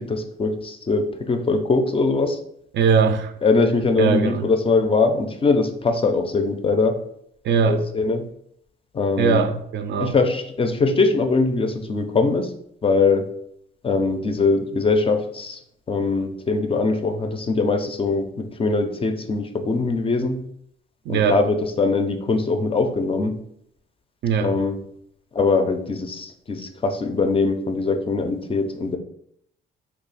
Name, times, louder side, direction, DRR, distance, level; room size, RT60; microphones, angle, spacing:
voice 1, 0.0-2.4 3.4-7.0 7.7-8.3 8.9-9.4 10.0-12.5 12.8-13.3 13.8-15.6 15.9-20.4 21.1-23.4 24.4-24.8 25.3-29.0, left 3 dB, 30° left, 7 dB, 0.4 m, -22 dB
voice 2, 2.7-3.3 4.0-4.5 7.4-7.8 9.2-10.1 21.1-21.4 24.2-24.5, right 5 dB, 65° right, 8 dB, 0.4 m, -20 dB
2.8 x 2.3 x 4.0 m, 0.71 s
cardioid pair, 90°, 20 cm